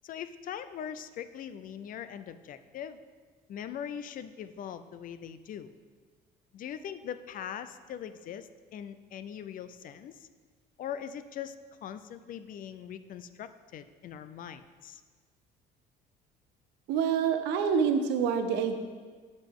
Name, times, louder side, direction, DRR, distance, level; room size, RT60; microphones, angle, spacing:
voice 1, 0.0-3.0 3.5-5.7 6.5-10.3 10.8-11.6 11.8-15.0, left 9 dB, 55° left, 12 dB, 0.5 m, -41 dB
voice 2, 16.9-18.8, right 6 dB, 90° right, 7 dB, 0.7 m, -26 dB
12.0 x 5.2 x 3.6 m, 1.5 s
cardioid pair, 110°, 17 cm